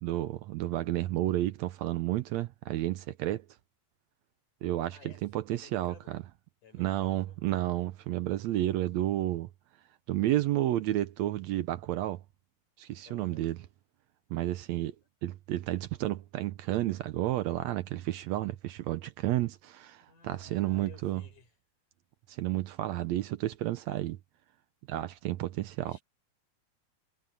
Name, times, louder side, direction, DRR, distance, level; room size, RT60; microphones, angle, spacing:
voice 1, 0.0-3.5 4.6-6.2 6.8-9.5 10.1-12.2 12.8-13.6 14.3-15.0 15.2-21.2 22.3-24.2 24.9-25.9, right 14 dB, 75° right, 1.7 m, -31 dB
voice 2, 4.9-6.1 6.6-7.5 13.0-13.5 20.1-21.6 25.8-26.0, left 6 dB, 80° left, 7.9 m, -56 dB
omnidirectional pair, 3.6 m